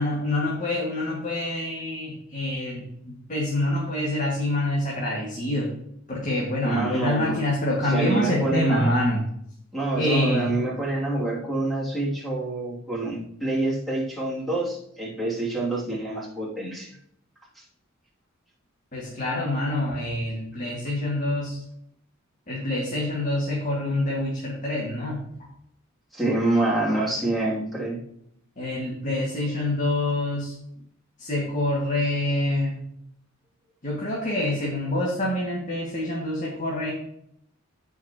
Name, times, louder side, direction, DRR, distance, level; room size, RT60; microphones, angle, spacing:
voice 1, 0.0-5.7 6.1-9.2 10.0-10.5 18.9-21.6 22.5-25.2 28.6-30.5 31.2-32.8 33.8-36.9, left 1 dB, 40° left, -4 dB, 2.0 m, -26 dB
voice 2, 6.6-7.4 7.8-9.0 9.7-17.0 17.5-17.6 26.1-28.0, right 2 dB, ahead, -5 dB, 2.7 m, -27 dB
16.0 x 5.8 x 3.0 m, 0.72 s
head